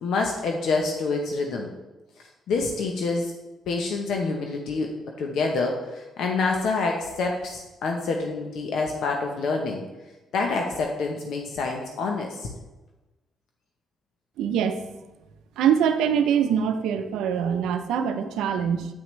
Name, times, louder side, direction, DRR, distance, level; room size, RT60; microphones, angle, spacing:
voice 1, 0.0-1.7 2.5-3.3 3.7-4.9 5.2-9.8 10.3-12.5, left 3 dB, 75° left, 2 dB, 0.8 m, -27 dB
voice 2, 14.4-14.8 15.6-18.9, right 8 dB, 90° right, 8 dB, 0.6 m, -23 dB
8.3 x 5.9 x 3.2 m, 1.1 s
cardioid pair, 90°, 0 cm